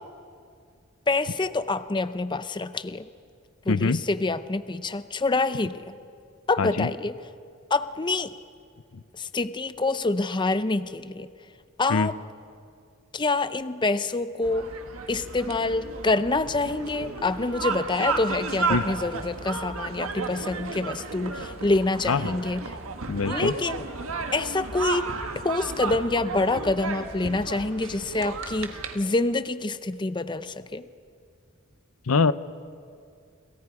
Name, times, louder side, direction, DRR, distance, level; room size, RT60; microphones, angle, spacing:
voice 1, 1.1-3.1 3.7-5.9 6.5-7.2 7.7-8.3 9.1-11.3 11.8-12.2 13.1-14.7 15.1-22.6 23.3-23.9 24.3-25.1 25.4-30.8, left 3 dB, 20° left, 12 dB, 0.6 m, -26 dB
voice 2, 3.7-4.0 6.6-6.9 11.9-12.1 18.7-18.8 22.1-22.4 23.1-23.5 32.1-32.3, left 4 dB, 90° left, 15 dB, 0.7 m, -23 dB
sound 1, 14.4-29.0, right 4 dB, 85° right, 1.5 m, -33 dB
29.5 x 27.5 x 4.9 m, 2.3 s
head